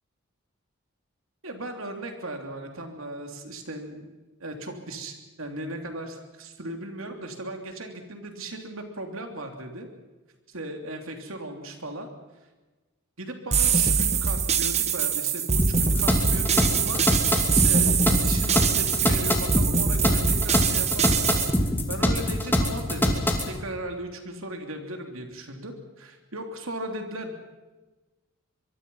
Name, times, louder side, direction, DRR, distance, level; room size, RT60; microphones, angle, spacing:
voice 1, 1.4-4.1 4.4-9.9 10.5-12.1 13.2-17.1 17.5-21.5 21.9-27.3, right 1 dB, 70° right, 4 dB, 3.2 m, -37 dB
sound 1, 13.5-21.5, right 6 dB, 30° right, 1.2 m, -24 dB
sound 2, 15.6-23.5, left 1 dB, 10° left, 2.7 m, -24 dB
24.5 x 23.5 x 5.6 m, 1.2 s
head